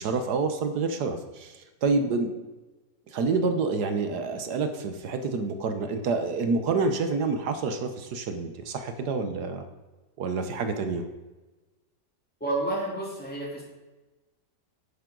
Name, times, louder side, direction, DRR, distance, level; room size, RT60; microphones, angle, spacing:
voice 1, 0.0-2.3 3.1-9.6 10.2-11.0, right 4 dB, 70° right, 7 dB, 1.5 m, -28 dB
voice 2, 12.4-13.6, right 2 dB, 5° left, -4 dB, 3.1 m, -30 dB
10.5 x 9.2 x 3.9 m, 1.2 s
omnidirectional pair, 1.8 m